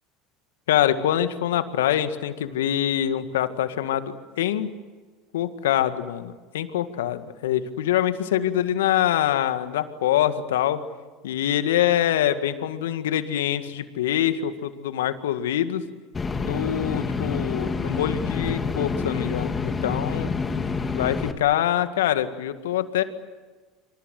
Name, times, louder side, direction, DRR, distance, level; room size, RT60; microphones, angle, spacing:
voice 1, 0.7-4.7 5.3-10.8 11.2-15.8 16.4-20.3 20.9-23.0, left 11 dB, 75° left, 10 dB, 1.9 m, -24 dB
sound 1, 16.1-21.3, left 4 dB, 25° left, 2.6 m, -28 dB
27.0 x 26.5 x 7.8 m, 1.3 s
hypercardioid pair, 75°, 0 cm